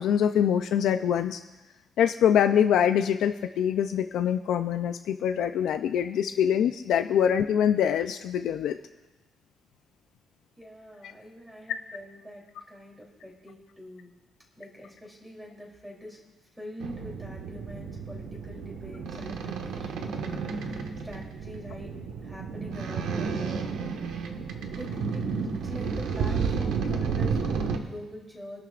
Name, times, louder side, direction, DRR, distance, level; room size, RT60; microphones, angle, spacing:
voice 1, 0.0-1.4 2.0-8.8, left 9 dB, 70° left, 7 dB, 0.5 m, -24 dB
voice 2, 10.6-14.1 14.6-16.2 16.5-21.9 22.2-23.9 24.7-25.2 25.6-28.6, equal, 5° right, -2 dB, 3.2 m, -45 dB
sound 1, 16.8-27.8, right 5 dB, 80° right, 1.4 m, -32 dB
24.0 x 12.0 x 2.5 m, 1.1 s
cardioid pair, 165°, 0 cm